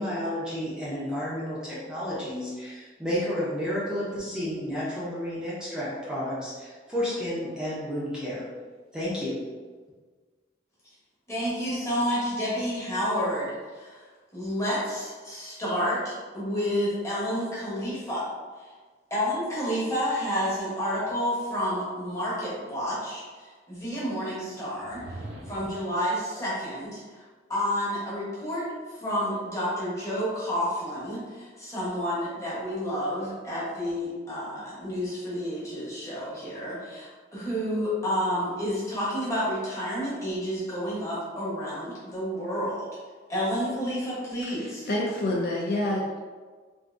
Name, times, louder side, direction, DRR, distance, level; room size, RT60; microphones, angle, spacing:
voice 1, 0.0-8.4 8.9-9.3, equal, 5° right, -9 dB, 0.6 m, -31 dB
voice 2, 11.3-14.1 14.3-18.3 18.6-18.7 19.1-27.2 27.5-42.9 43.3-44.8, equal, 15° left, -9 dB, 1.0 m, -30 dB
sound 1, 24.7-25.9, right 1 dB, 55° right, 0.5 m, -41 dB
voice 3, 44.5-46.2, left 1 dB, 50° left, -3 dB, 0.4 m, -28 dB
3.5 x 2.5 x 2.5 m, 1.5 s
head